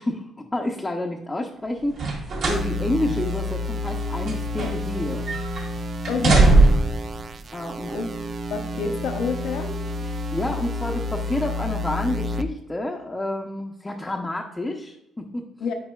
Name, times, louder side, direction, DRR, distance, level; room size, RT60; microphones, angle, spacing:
voice 1, 0.0-5.3 7.5-8.0 10.0-15.5, left 1 dB, 15° left, -1 dB, 0.7 m, -29 dB
sound 1, 1.9-2.7 3.1-3.2 3.9-5.0 5.3-5.6 6.0-7.0 7.9-8.0, right 2 dB, 70° right, 1.7 m, -19 dB
sound 2, 2.4-12.4, left 1 dB, 40° right, 0.4 m, -30 dB
voice 2, 6.1-6.7 7.9-8.0 8.5-9.7 15.6-15.7, left 5 dB, 80° left, 4 dB, 0.9 m, -28 dB
8.7 x 4.8 x 2.3 m, 0.83 s
cardioid pair, 90°, 0 cm